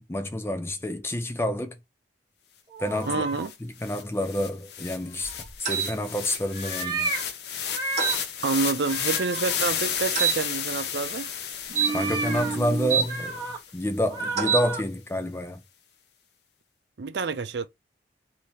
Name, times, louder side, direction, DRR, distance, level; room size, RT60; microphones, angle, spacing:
voice 1, 0.0-1.8 2.8-3.2 3.6-5.3 5.6-7.1 11.9-13.5 13.7-15.6, equal, 15° left, 0.4 m, -28 dB
sound 1, 2.7-3.5 5.1-5.6 6.5-7.2 7.7-8.2 8.8-9.6 11.0-11.3 11.8-12.6 12.9-13.6 14.0-14.8, right 2 dB, 25° right, 1.1 m, -33 dB
sound 2, 3.0-3.1 3.4-13.7, left 8 dB, 70° left, 0.5 m, -33 dB
voice 2, 3.1-3.5 8.4-11.3 17.0-17.7, right 4 dB, 75° right, 0.5 m, -28 dB
sound 3, 5.6-5.9 8.0-8.2 10.1-10.4 11.7-13.1 14.3-14.7, right 6 dB, 40° right, 1.1 m, -26 dB
2.9 x 2.8 x 3.4 m
head